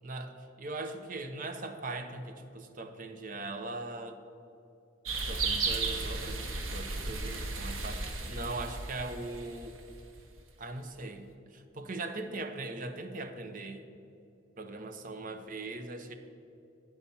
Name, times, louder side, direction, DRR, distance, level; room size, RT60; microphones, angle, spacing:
voice 1, 0.0-4.2 5.2-9.8 10.6-13.8 14.6-16.1, right 2 dB, 45° right, 7 dB, 0.6 m, -40 dB
sound 1, 5.0-10.1, right 3 dB, 90° right, 0.9 m, -35 dB
9.3 x 4.2 x 6.8 m, 2.7 s
head